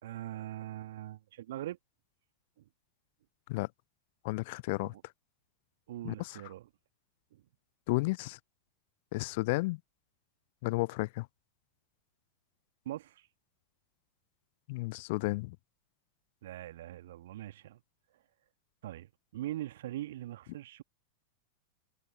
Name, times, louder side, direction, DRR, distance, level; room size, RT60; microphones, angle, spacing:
voice 1, 0.0-1.8 2.6-2.7 4.9-5.0 5.9-6.7 7.3-7.4 12.8-13.3 16.4-17.8 18.8-20.8, right 14 dB, 55° right, 1.7 m, -42 dB
voice 2, 4.2-4.9 6.0-6.4 7.9-8.4 9.1-9.8 10.6-11.3 14.7-15.6, left 23 dB, 50° left, 0.5 m, -32 dB
figure-of-eight pair, 90°, 0 cm